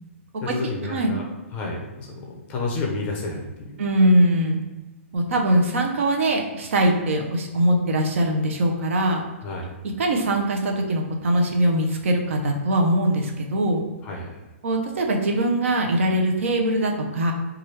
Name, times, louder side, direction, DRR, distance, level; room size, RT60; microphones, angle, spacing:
voice 1, 0.4-1.2 1.5-3.8 9.4-9.7 14.0-14.4, left 3 dB, 20° left, 0 dB, 0.5 m, -30 dB
voice 2, 3.8-4.6 5.1-9.2 10.0-13.8 14.6-17.3, right 1 dB, 65° right, 2 dB, 0.6 m, -21 dB
2.9 x 2.3 x 3.1 m, 1.2 s
hypercardioid pair, 160°, 7 cm